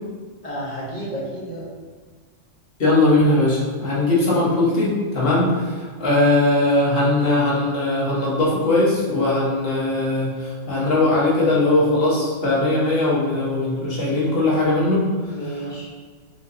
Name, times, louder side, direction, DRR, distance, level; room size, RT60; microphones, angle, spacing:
voice 1, 0.4-1.7 5.2-5.5 15.3-15.9, right 1 dB, 35° left, -6 dB, 0.8 m, -31 dB
voice 2, 2.8-5.5 6.0-15.9, left 2 dB, 50° left, -6 dB, 1.2 m, -20 dB
4.4 x 2.7 x 2.6 m, 1.5 s
omnidirectional pair, 1.3 m